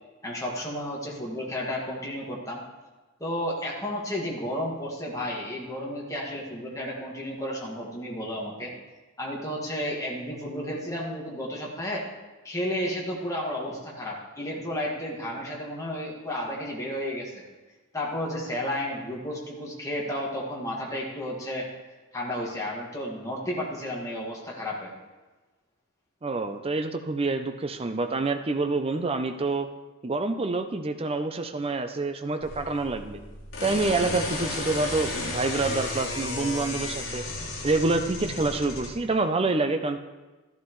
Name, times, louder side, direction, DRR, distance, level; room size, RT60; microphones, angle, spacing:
voice 1, 0.2-2.6 3.2-8.7 9.2-12.1 12.4-17.4 17.9-21.7 22.1-24.9, left 1 dB, 15° left, -3 dB, 1.9 m, -32 dB
voice 2, 26.2-29.7 30.0-33.2 33.6-37.3 37.6-40.0, right 3 dB, 25° right, 7 dB, 0.5 m, -27 dB
sound 1, 32.4-38.9, left 2 dB, 55° left, 2.6 m, -33 dB
14.0 x 11.5 x 3.2 m, 1.2 s
head